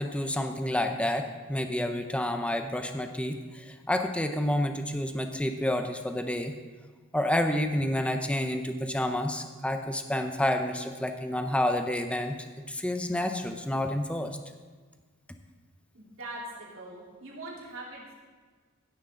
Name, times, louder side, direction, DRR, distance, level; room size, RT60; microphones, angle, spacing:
voice 1, 0.0-6.5 7.1-12.4 12.7-14.4, left 1 dB, 5° left, 6 dB, 0.7 m, -29 dB
voice 2, 15.9-18.2, right 1 dB, 70° right, -5 dB, 3.6 m, -42 dB
15.5 x 10.0 x 3.8 m, 1.4 s
head